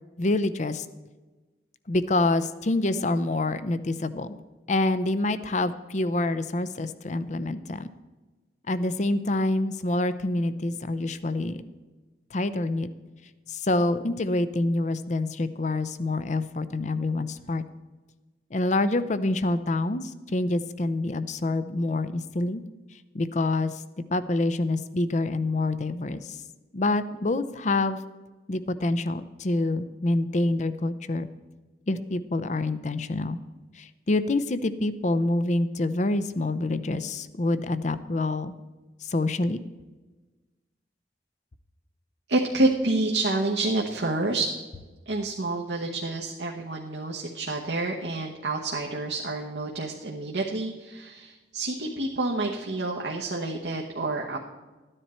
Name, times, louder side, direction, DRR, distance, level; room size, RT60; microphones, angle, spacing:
voice 1, 0.2-0.9 1.9-4.4 4.7-7.9 8.7-11.6 12.3-12.9 13.5-17.6 18.5-22.6 23.1-23.7 24.1-26.4 26.7-28.0 28.5-31.3 31.9-33.4 33.8-38.5 39.0-39.6, left 2 dB, 40° left, 13 dB, 0.6 m, -26 dB
voice 2, 42.3-44.5 45.1-54.4, right 2 dB, 80° right, 0 dB, 1.1 m, -28 dB
14.0 x 9.9 x 4.4 m, 1.2 s
head